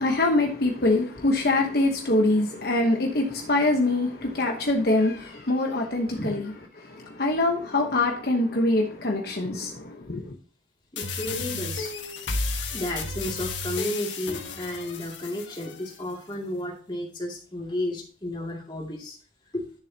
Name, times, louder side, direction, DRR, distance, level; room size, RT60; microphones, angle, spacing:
voice 1, 0.0-6.5 6.8-10.3, left 2 dB, 60° left, 1.1 m, -24 dB
voice 2, 6.1-6.6 10.9-11.9 12.7-19.2 19.5-19.7, left 1 dB, 25° left, 2.5 m, -33 dB
sound 1, 11.0-16.0, left 3 dB, 90° left, 1.5 m, -33 dB
11.0 x 6.7 x 2.9 m
head